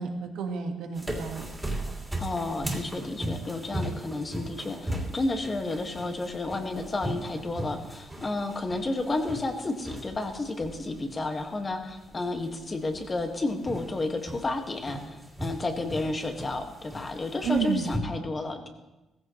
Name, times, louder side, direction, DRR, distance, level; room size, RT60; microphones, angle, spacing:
voice 1, 0.0-1.5 17.4-18.3, right 6 dB, 80° right, 4 dB, 1.7 m, -31 dB
sound 1, 0.9-18.0, right 1 dB, 10° right, 3.0 m, -38 dB
voice 2, 2.2-18.7, left 2 dB, 30° left, 4 dB, 1.8 m, -31 dB
17.0 x 15.0 x 3.2 m, 1.0 s
cardioid pair, 90°, 0 cm